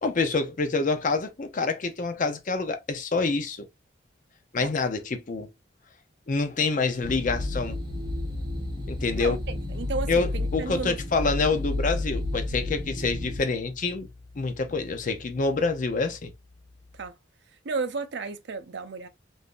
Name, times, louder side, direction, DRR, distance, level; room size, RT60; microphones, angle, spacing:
voice 1, 0.0-3.7 4.5-5.5 6.3-7.8 8.9-9.4 10.1-14.1 14.4-16.3, left 3 dB, 40° left, 0.5 m, -27 dB
sound 1, 7.0-13.4, left 2 dB, 25° right, 1.2 m, -31 dB
voice 2, 9.2-11.0 16.9-17.1 17.6-19.1, right 4 dB, 60° right, 0.5 m, -33 dB
3.6 x 2.6 x 2.4 m
head